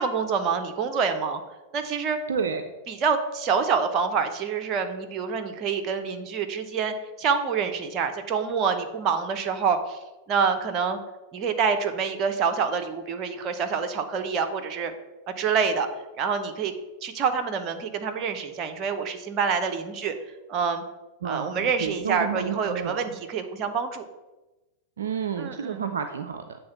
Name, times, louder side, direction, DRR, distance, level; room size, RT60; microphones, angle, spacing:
voice 1, 0.0-1.4 1.7-2.2 2.9-10.0 10.3-11.0 11.3-14.9 15.4-15.9 16.2-16.7 17.0-20.1 20.5-20.8 21.2-24.1 25.4-25.8, right 6 dB, 35° right, 6 dB, 0.8 m, -26 dB
voice 2, 2.3-2.7 21.2-23.2 25.0-26.6, right 6 dB, 65° right, 7 dB, 0.4 m, -30 dB
7.7 x 3.6 x 5.7 m, 1.1 s
figure-of-eight pair, 90°, 0 cm